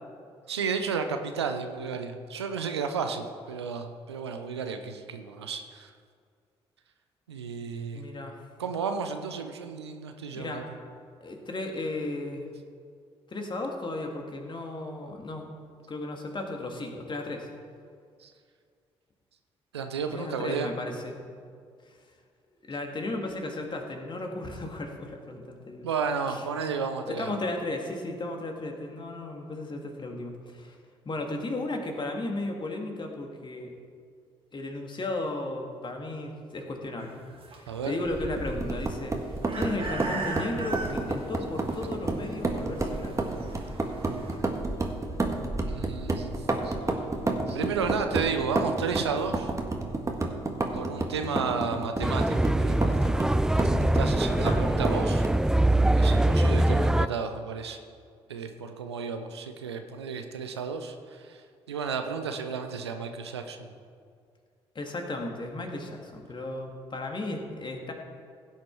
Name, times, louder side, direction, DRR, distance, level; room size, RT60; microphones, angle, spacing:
voice 1, 0.5-5.9 7.3-8.0 8.6-10.6 18.2-18.3 19.7-20.7 25.8-27.4 37.7-38.0 45.7-46.7 47.5-49.5 50.7-53.0 53.3-55.3 55.9-57.8 58.3-61.4 61.7-63.7, right 5 dB, 90° right, 6 dB, 0.7 m, -33 dB
voice 2, 8.0-8.4 10.3-10.7 11.2-12.5 13.3-15.5 15.9-17.5 20.1-21.3 22.7-25.9 26.3-26.4 27.1-30.8 31.1-33.7 34.5-37.2 37.6-39.2 39.5-43.4 54.3-54.6 64.8-67.9, left 2 dB, 35° left, 2 dB, 2.2 m, -35 dB
sound 1, 37.0-44.4, right 3 dB, 45° right, 2.2 m, -40 dB
sound 2, 38.0-55.5, right 2 dB, 20° right, 1.7 m, -31 dB
sound 3, 52.0-57.1, right 1 dB, 5° right, 0.3 m, -23 dB
16.5 x 7.4 x 4.7 m, 2.1 s
hypercardioid pair, 45°, 13 cm